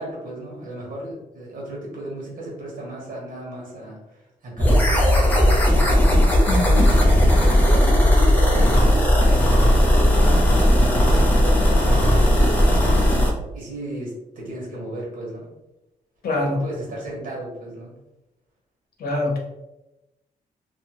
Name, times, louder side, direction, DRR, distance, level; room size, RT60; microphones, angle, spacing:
voice 1, 0.0-6.1 7.3-12.6 13.5-15.5 16.4-17.9, right 1 dB, 65° right, -3 dB, 1.3 m, -35 dB
sound 1, 4.6-13.3, equal, 10° left, 0.6 m, -16 dB
voice 2, 6.5-6.9 16.2-16.6 19.0-19.4, left 2 dB, 85° left, -1 dB, 0.8 m, -24 dB
2.9 x 2.3 x 2.9 m, 0.95 s
wide cardioid pair, 140°, 15 cm